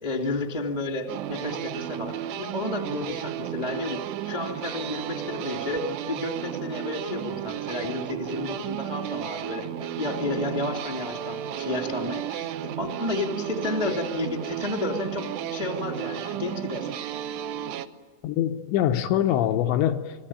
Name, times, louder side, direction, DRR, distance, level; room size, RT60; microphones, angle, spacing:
voice 1, 0.0-16.9, left 2 dB, 10° right, 1.4 m, -31 dB
sound 1, 1.1-17.9, right 11 dB, 75° right, 2.8 m, -33 dB
voice 2, 18.2-20.3, left 11 dB, 75° left, 3.0 m, -24 dB
29.0 x 22.0 x 9.0 m
omnidirectional pair, 5.6 m